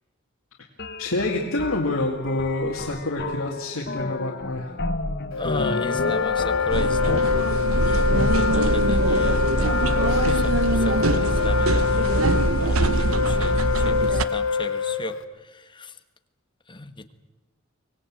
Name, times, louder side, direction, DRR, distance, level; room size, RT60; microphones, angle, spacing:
sound 1, 0.8-7.2, left 2 dB, 55° left, 1.5 m, -31 dB
voice 1, 1.0-4.7 8.1-8.4 10.1-10.7, left 2 dB, 85° left, 0 dB, 2.4 m, -27 dB
Wind instrument woodwind instrument, 5.3-15.2, left 6 dB, 70° left, 1.4 m, -25 dB
voice 2, 5.4-7.3 7.8-9.8 10.4-10.5 10.8-12.2 12.5-15.9 16.7-17.1, left 2 dB, 25° left, 9 dB, 1.4 m, -35 dB
sound 2, 6.7-14.2, right 2 dB, 85° right, 1.0 m, -22 dB
24.5 x 18.5 x 8.8 m, 1.1 s
head